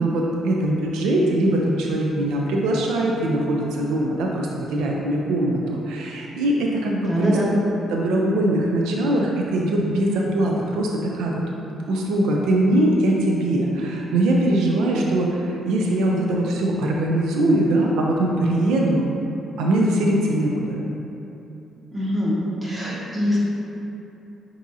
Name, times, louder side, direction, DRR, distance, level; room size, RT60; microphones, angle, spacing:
voice 1, 0.0-7.4 7.9-11.4 11.9-19.1 19.6-20.8, right 1 dB, 90° right, -1 dB, 0.4 m, -21 dB
voice 2, 7.1-7.5 21.9-22.3 22.6-23.4, equal, 15° right, -8 dB, 1.3 m, -23 dB
7.1 x 2.8 x 2.7 m, 2.9 s
cardioid pair, 90°, 0 cm